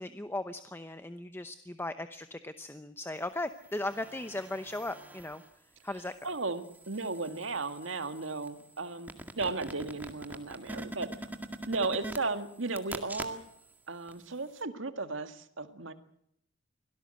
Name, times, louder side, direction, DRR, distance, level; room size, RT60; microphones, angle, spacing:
voice 1, 0.0-5.4 5.8-6.1, left 1 dB, 10° left, 10 dB, 0.8 m, -37 dB
sound 1, 3.5-5.5 6.0-13.7 14.1-14.2, right 1 dB, 10° right, 1.9 m, -45 dB
voice 2, 6.2-11.1 11.7-13.5 13.9-15.9, right 3 dB, 70° right, 9 dB, 2.0 m, -35 dB
25.0 x 17.5 x 7.8 m, 0.71 s
head